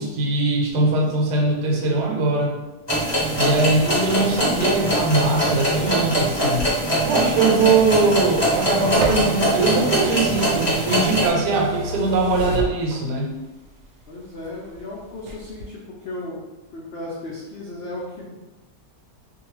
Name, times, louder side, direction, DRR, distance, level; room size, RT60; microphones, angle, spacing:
voice 1, 0.0-2.6 3.3-6.7 7.0-13.3, right 3 dB, 90° right, 0 dB, 1.2 m, -21 dB
sound 1, 2.9-11.3, right 1 dB, 20° left, 0.7 m, -22 dB
voice 2, 3.4-3.9 14.1-16.4 16.7-18.3, left 1 dB, 80° left, -6 dB, 0.5 m, -35 dB
sound 2, 6.5-13.4 13.8-14.8 15.2-15.6, right 1 dB, 65° right, 0.9 m, -31 dB
2.6 x 2.3 x 3.0 m, 1.1 s
omnidirectional pair, 1.7 m